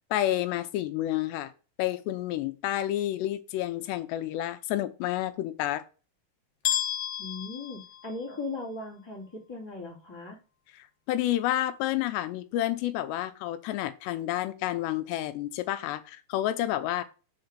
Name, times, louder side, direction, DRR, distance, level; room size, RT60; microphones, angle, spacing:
voice 1, 0.1-1.5 1.8-5.8 10.7-17.0, left 13 dB, 80° left, 2.8 m, -30 dB
sound 1, 6.6-8.6, left 11 dB, 65° left, 1.4 m, -32 dB
voice 2, 7.2-10.4, left 3 dB, 10° left, 1.8 m, -38 dB
6.8 x 4.4 x 6.6 m
omnidirectional pair, 4.9 m